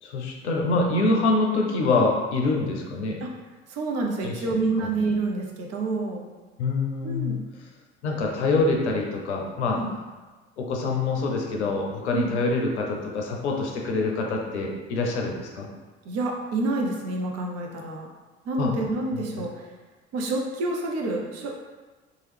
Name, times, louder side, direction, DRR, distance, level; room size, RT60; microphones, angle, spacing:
voice 1, 0.0-3.2 4.2-4.4 4.8-4.9 6.6-7.4 8.0-9.8 10.6-15.7 18.6-18.7 19.1-19.2, left 3 dB, 80° left, 0 dB, 0.6 m, -25 dB
voice 2, 3.7-6.3 7.0-7.4 9.8-9.9 12.1-12.3 16.0-18.1 18.4-19.5 20.1-21.5, right 2 dB, 50° right, 0 dB, 0.7 m, -28 dB
2.9 x 2.3 x 3.3 m, 1.2 s
figure-of-eight pair, 55°, 34 cm